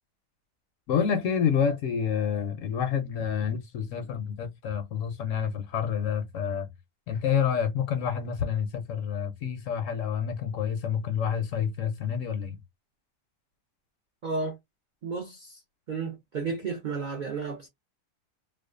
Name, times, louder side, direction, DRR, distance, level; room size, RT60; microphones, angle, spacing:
voice 1, 0.9-6.7 7.1-12.6, left 7 dB, 70° left, 0.8 m, -28 dB
voice 2, 14.2-14.6 15.0-15.6 15.9-17.7, right 4 dB, 60° right, 0.5 m, -32 dB
2.5 x 2.3 x 2.4 m
omnidirectional pair, 1.6 m